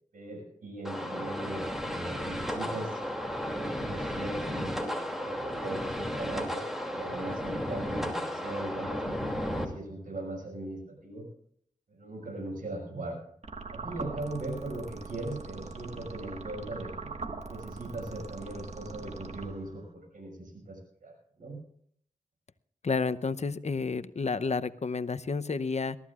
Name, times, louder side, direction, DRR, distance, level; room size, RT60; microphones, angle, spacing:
voice 1, 0.1-3.0 3.4-11.2 11.9-13.2 13.7-17.1 17.5-21.6, right 1 dB, 85° right, 2 dB, 6.1 m, -39 dB
sound 1, 0.8-9.6, equal, ahead, 2.6 m, -34 dB
sound 2, 13.4-19.9, right 4 dB, 55° right, 1.6 m, -42 dB
voice 2, 22.8-26.0, left 4 dB, 55° left, 13 dB, 0.7 m, -30 dB
22.5 x 14.0 x 2.5 m, 0.63 s
cardioid pair, 45°, 14 cm